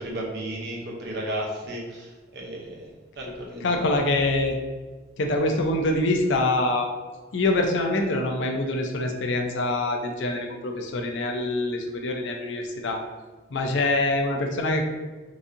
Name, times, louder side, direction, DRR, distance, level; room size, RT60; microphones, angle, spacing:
voice 1, 0.0-3.8, right 1 dB, 55° right, -2 dB, 0.7 m, -34 dB
voice 2, 3.6-4.5 5.2-6.9 7.3-13.0 13.5-14.8, left 2 dB, 65° left, 3 dB, 0.4 m, -25 dB
4.0 x 2.6 x 2.5 m, 1.3 s
head